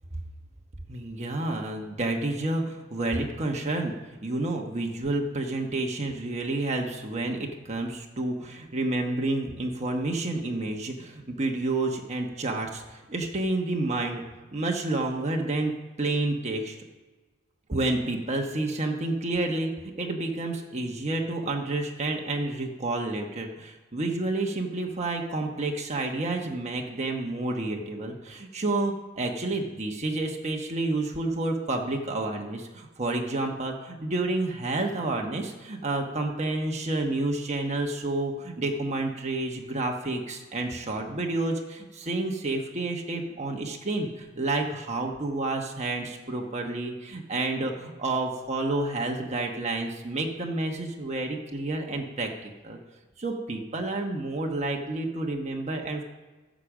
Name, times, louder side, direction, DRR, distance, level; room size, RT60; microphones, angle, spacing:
voice 1, 0.9-3.9 4.2-14.2 14.5-15.7 16.0-16.8 17.7-19.7 20.0-52.8 53.2-56.0, right 2 dB, 30° right, 1 dB, 1.1 m, -29 dB
15.0 x 5.1 x 7.2 m, 1.3 s
head